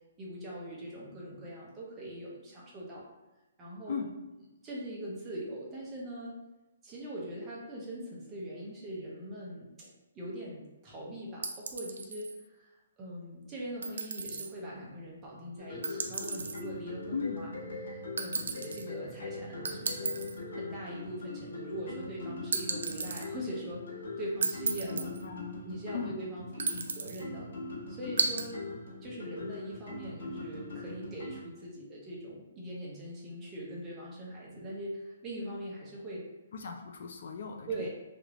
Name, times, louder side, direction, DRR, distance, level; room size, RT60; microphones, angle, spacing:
voice 1, 0.2-3.1 3.6-4.0 4.6-6.4 6.8-9.9 10.1-12.7 13.0-17.5 17.8-20.2 20.5-23.9 24.2-25.1 25.6-27.5 27.9-28.7 29.0-36.2 37.7-37.9, right 1 dB, 15° right, -5 dB, 0.6 m, -41 dB
sound 1, 11.4-12.4 13.8-14.5 15.8-16.6 18.2-18.8 19.6-20.4 22.5-23.3 24.4-25.2 26.6-27.2 28.2-28.5, right 4 dB, 75° right, 0.4 m, -34 dB
sound 2, 15.6-31.4, left 2 dB, 80° left, 1.2 m, -42 dB
voice 2, 17.1-17.5 24.8-25.6 25.9-26.2 36.5-37.9, left 6 dB, 55° left, 3 dB, 0.3 m, -38 dB
3.2 x 2.5 x 2.9 m, 1.1 s
hypercardioid pair, 175°, 0 cm